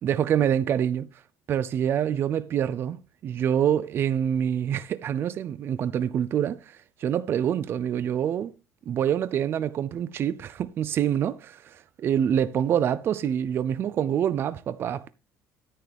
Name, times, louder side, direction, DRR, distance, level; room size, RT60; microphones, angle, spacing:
voice 1, 0.0-1.1 1.5-8.5 8.9-15.1, right 9 dB, 35° right, 0.5 m, -26 dB
10.0 x 9.2 x 3.5 m
cardioid pair, 155°, 6 cm